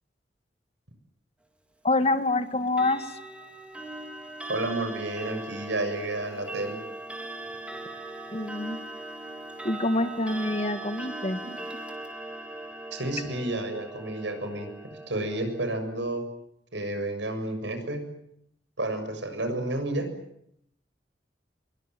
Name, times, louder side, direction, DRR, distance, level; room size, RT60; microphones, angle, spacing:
voice 1, 1.8-3.2 8.3-8.8 9.6-11.4, left 2 dB, 35° left, 10 dB, 1.8 m, -26 dB
Clock, 2.7-15.8, right 2 dB, 5° right, 3.5 m, -40 dB
voice 2, 4.5-6.8 12.9-16.3 16.7-18.1 18.8-20.1, right 2 dB, 85° right, 7 dB, 6.9 m, -31 dB
26.5 x 23.0 x 9.4 m, 0.75 s
head